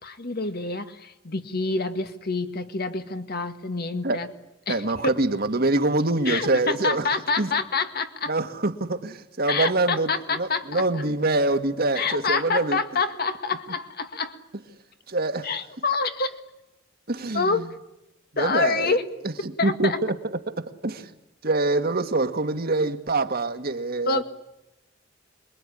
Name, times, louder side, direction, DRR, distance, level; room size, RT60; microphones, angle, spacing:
voice 1, 0.0-4.3 4.7-4.8 6.3-8.3 9.5-11.0 11.9-14.4 15.4-16.4 17.3-17.8 18.4-19.1 19.6-20.0 24.1-24.2, left 4 dB, 50° left, 1.9 m, -27 dB
voice 2, 4.7-7.1 7.4-7.5 8.3-12.8 15.1-15.5 17.1-17.7 18.3-19.0 19.2-20.2 20.6-21.1 21.4-24.2, right 2 dB, 50° right, 1.7 m, -25 dB
26.5 x 22.0 x 10.0 m
head